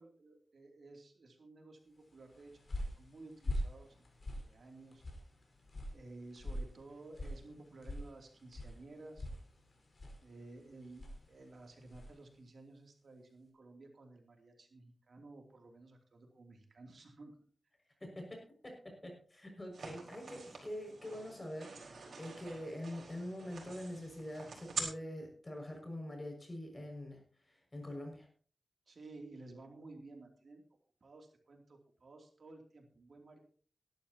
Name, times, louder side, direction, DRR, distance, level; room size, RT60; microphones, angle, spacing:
voice 1, 0.0-2.6 2.9-3.9 4.4-5.0 5.9-9.3 10.2-17.4 28.9-30.6 31.0-33.4, right 2 dB, 65° right, 2 dB, 2.9 m, -54 dB
sound 1, 2.1-12.2, left 1 dB, 50° left, 5.0 m, -44 dB
voice 2, 18.0-28.3, left 1 dB, 25° left, 2 dB, 6.2 m, -45 dB
sound 2, 19.7-24.8, right 5 dB, 80° right, 4.6 m, -46 dB
18.5 x 12.0 x 2.9 m, 0.43 s
wide cardioid pair, 80°, 0 cm